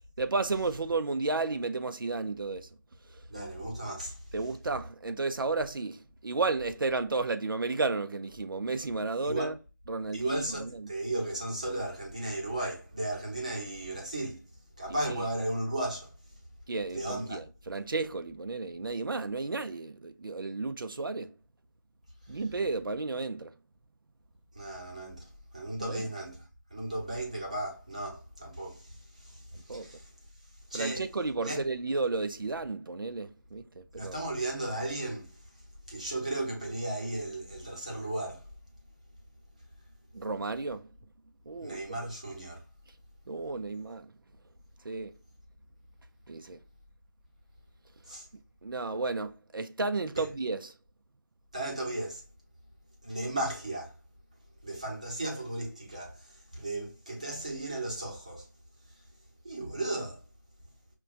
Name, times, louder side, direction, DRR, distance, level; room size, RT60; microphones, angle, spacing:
voice 1, 0.2-2.7 3.1-3.2 4.3-9.5 9.9-10.9 14.9-15.2 16.7-21.3 22.3-23.5 25.8-26.1 29.5-29.9 30.7-34.2 40.1-40.9 41.5-41.8 43.3-44.1 44.8-45.1 46.3-46.6 48.6-50.7, right 3 dB, 90° right, 0.4 m, -33 dB
voice 2, 3.3-4.2 9.2-9.5 10.1-14.4 14.8-16.1 16.9-17.4 24.5-26.4 26.7-30.1 30.7-31.1 31.4-31.6 33.9-35.4 35.9-38.5 41.6-42.6 48.1-48.3 50.2-50.3 51.5-52.2 53.0-53.9 54.6-58.5 59.4-60.2, right 1 dB, 20° right, 0.7 m, -35 dB
5.7 x 2.2 x 2.4 m
figure-of-eight pair, 175°, 11 cm